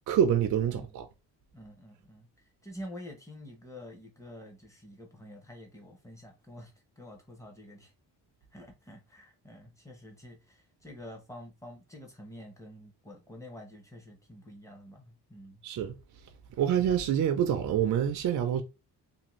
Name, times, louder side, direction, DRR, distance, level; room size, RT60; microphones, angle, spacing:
voice 1, 0.1-1.1 15.6-16.0 16.6-18.6, right 9 dB, 50° right, 0.4 m, -26 dB
voice 2, 0.6-0.9 1.5-2.3 2.6-7.9 8.5-15.6, left 1 dB, 10° left, 0.7 m, -48 dB
2.6 x 2.6 x 3.0 m
wide cardioid pair, 170°, 41 cm